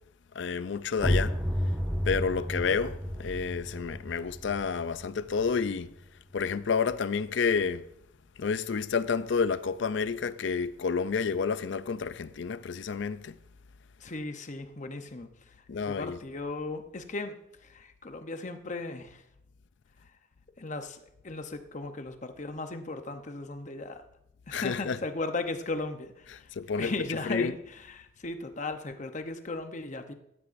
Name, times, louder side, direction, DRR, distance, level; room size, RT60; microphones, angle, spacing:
voice 1, 0.4-1.4 2.1-5.9 6.3-7.9 8.4-13.4 15.7-16.2 24.5-25.0 26.6-26.9 27.3-27.5, left 5 dB, 65° left, 0.4 m, -29 dB
sound 1, 1.0-6.5, equal, 5° right, 1.2 m, -32 dB
voice 2, 14.0-19.2 20.6-24.0 24.5-26.5 26.8-30.1, left 3 dB, 40° left, 0.8 m, -37 dB
13.0 x 10.0 x 2.6 m
head